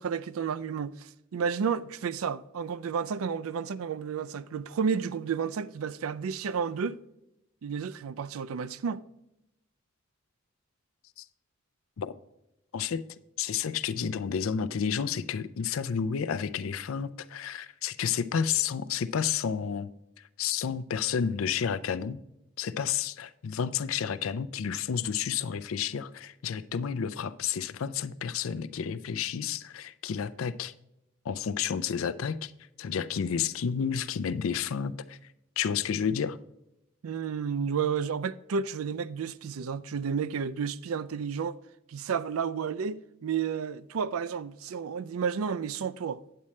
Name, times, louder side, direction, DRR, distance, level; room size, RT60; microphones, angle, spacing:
voice 1, 0.0-7.0 7.6-9.0 37.0-41.6 41.9-46.2, right 6 dB, 80° right, 0.4 m, -31 dB
voice 2, 12.7-13.0 13.4-19.9 20.4-22.2 22.6-30.7 31.2-32.5 32.8-35.2 35.6-36.4, left 7 dB, 70° left, 0.4 m, -31 dB
8.5 x 8.5 x 3.2 m
head